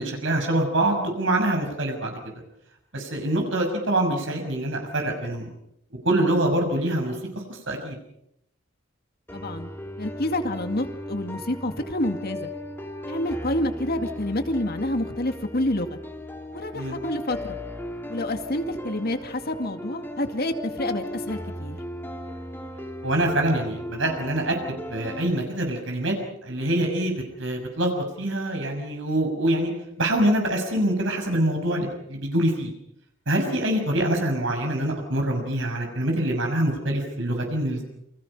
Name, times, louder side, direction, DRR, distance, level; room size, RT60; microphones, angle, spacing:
voice 1, 0.0-2.2 2.9-5.5 6.0-7.2 7.5-8.0 16.7-17.0 23.0-26.1 26.4-29.7 30.0-32.7 33.3-37.8, right 1 dB, 65° right, 3 dB, 6.4 m, -25 dB
voice 2, 9.3-9.7 10.0-12.5 13.1-16.0 16.5-17.6 18.1-21.8, left 1 dB, 50° left, 6 dB, 2.3 m, -28 dB
sound 1, 9.3-25.3, left 1 dB, 10° left, 2.7 m, -37 dB
29.0 x 25.0 x 5.6 m, 0.78 s
head